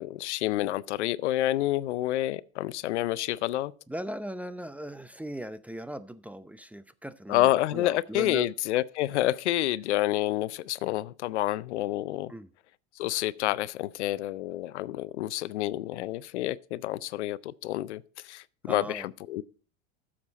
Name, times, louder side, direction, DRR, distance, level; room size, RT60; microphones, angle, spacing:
voice 1, 0.0-3.7 7.3-12.3 13.0-19.4, left 15 dB, 85° left, 0.6 m, -29 dB
voice 2, 3.9-8.5 9.1-9.2 12.3-12.5 18.6-19.1, right 1 dB, 5° right, 0.5 m, -38 dB
12.0 x 7.4 x 4.1 m
hypercardioid pair, 100°, 33 cm